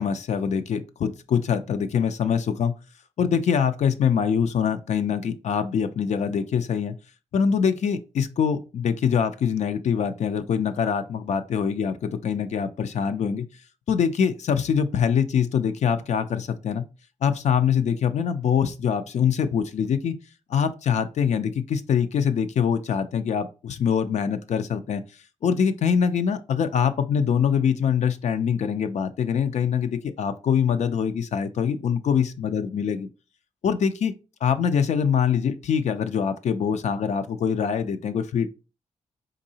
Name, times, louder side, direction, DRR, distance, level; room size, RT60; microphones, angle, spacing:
voice 1, 0.0-2.7 3.2-7.0 7.3-13.5 13.9-16.8 17.2-20.2 20.5-25.0 25.4-33.1 33.6-34.1 34.4-38.5, left 7 dB, 60° left, 0.4 m, -24 dB
3.8 x 2.7 x 2.7 m
wide cardioid pair, 105°, 13 cm